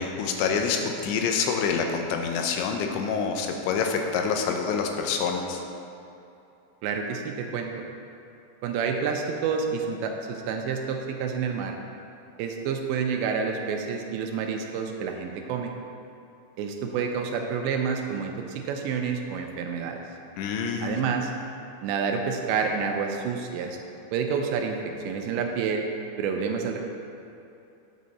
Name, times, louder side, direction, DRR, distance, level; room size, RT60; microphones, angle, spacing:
voice 1, 0.0-5.6 20.4-20.9, left 5 dB, 85° left, 3 dB, 3.1 m, -27 dB
voice 2, 6.8-7.8 8.6-11.8 12.4-15.7 16.6-20.0 20.8-21.3 21.8-23.8 24.1-24.8 25.0-25.9 26.2-26.8, right 6 dB, 85° right, 3 dB, 2.8 m, -29 dB
10.5 x 7.4 x 4.1 m, 2.8 s
omnidirectional pair, 5.2 m